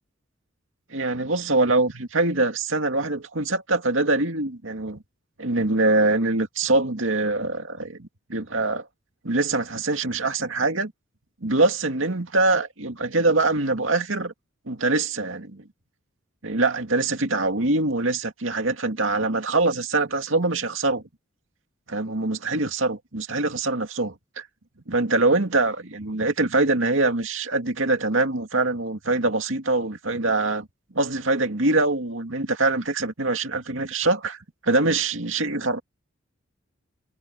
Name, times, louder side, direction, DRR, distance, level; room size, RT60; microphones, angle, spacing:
voice 1, 0.9-5.0 5.4-8.9 9.2-10.9 11.4-14.3 14.7-15.6 16.4-21.0 21.9-24.5 24.9-30.7 30.9-34.4 34.6-35.8, right 2 dB, 80° right, 2.3 m, -24 dB
head